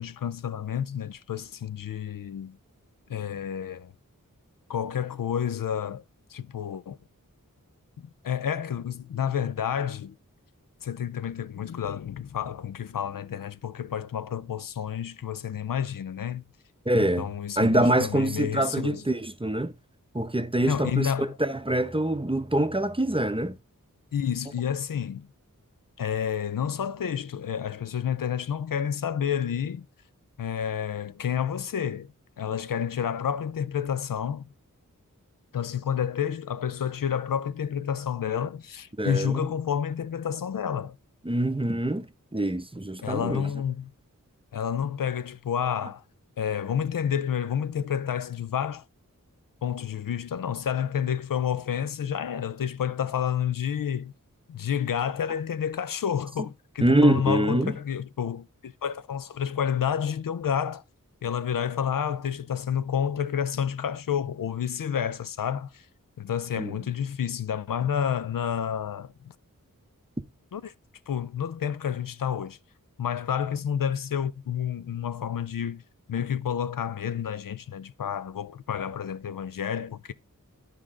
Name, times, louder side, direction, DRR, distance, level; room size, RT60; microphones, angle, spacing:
voice 1, 0.0-2.6 3.1-3.9 4.7-6.0 6.3-7.0 8.2-10.2 10.8-16.4 17.2-19.0 20.6-21.4 24.1-25.3 26.0-29.9 30.4-34.4 35.5-41.0 43.0-43.9 44.5-46.0 46.4-48.8 49.6-54.1 54.5-60.8 61.2-65.9 66.2-69.3 70.5-70.7 71.1-72.6 73.0-75.8 76.1-80.1, left 8 dB, 75° left, 0.5 m, -30 dB
voice 2, 16.9-17.3 17.6-19.7 20.1-23.6 39.0-39.4 41.2-43.4 56.8-57.7 66.6-66.7, right 1 dB, 15° right, 0.7 m, -25 dB
10.5 x 5.0 x 3.7 m
wide cardioid pair, 50°, 34 cm